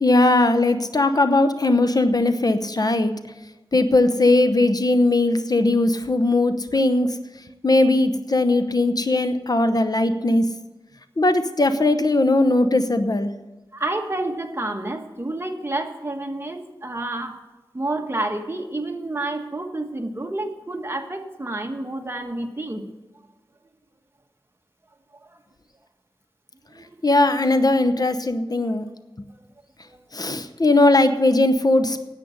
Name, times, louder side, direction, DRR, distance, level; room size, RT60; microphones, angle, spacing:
voice 1, 0.0-3.1 3.7-7.2 7.6-10.5 11.2-13.3 27.0-28.8 30.1-32.0, left 2 dB, 50° left, 9 dB, 0.8 m, -19 dB
voice 2, 13.7-17.3 17.7-22.8 25.2-25.4 26.7-26.9 29.8-30.0, right 2 dB, 25° right, 3 dB, 1.5 m, -29 dB
10.0 x 8.4 x 9.6 m, 1.1 s
wide cardioid pair, 65°, 9 cm